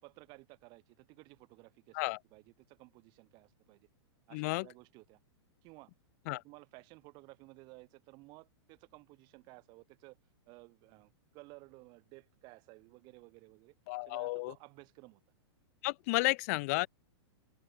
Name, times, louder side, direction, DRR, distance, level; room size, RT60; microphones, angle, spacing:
voice 1, 0.0-3.9 4.3-5.2 5.6-5.9 6.2-10.2 10.5-13.7 14.1-15.2, right 24 dB, 30° right, 6.5 m, -56 dB
voice 2, 4.3-4.7 6.3-6.4 13.9-14.5 15.8-16.9, left 25 dB, 35° left, 0.6 m, -32 dB
open air
hypercardioid pair, 160°, 14 cm